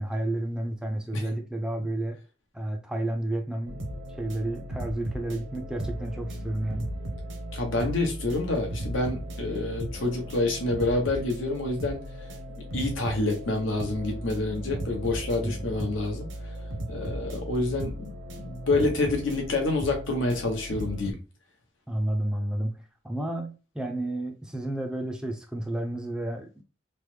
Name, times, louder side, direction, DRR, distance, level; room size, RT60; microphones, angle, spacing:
voice 1, 0.0-2.2 2.5-6.9 15.4-15.7 21.9-22.8 23.0-26.6, right 1 dB, 5° right, 0.3 m, -31 dB
sound 1, 3.6-21.1, equal, 75° right, 0.6 m, -36 dB
voice 2, 7.5-12.0 12.7-16.3 16.9-18.1 18.4-21.2, left 2 dB, 85° left, 0.9 m, -27 dB
3.2 x 2.1 x 3.1 m
head